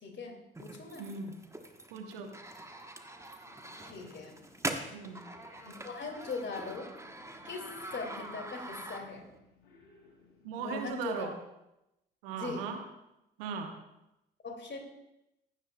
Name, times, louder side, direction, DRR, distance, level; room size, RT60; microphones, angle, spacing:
voice 1, 0.0-1.1 3.9-4.4 5.6-6.9 7.4-9.2 10.6-11.3 12.3-12.7 14.4-14.8, left 4 dB, 40° left, 2 dB, 2.5 m, -40 dB
sound 1, 0.5-9.4, right 2 dB, 10° right, 1.1 m, -44 dB
voice 2, 1.0-1.4 1.9-2.3 4.9-5.2 10.4-11.4 12.2-12.9 13.4-13.8, right 6 dB, 75° right, 5 dB, 1.1 m, -38 dB
Purr / Meow, 3.4-10.9, left 3 dB, 75° left, 2.3 m, -59 dB
15.5 x 11.0 x 2.3 m, 0.90 s
figure-of-eight pair, 45°, 29 cm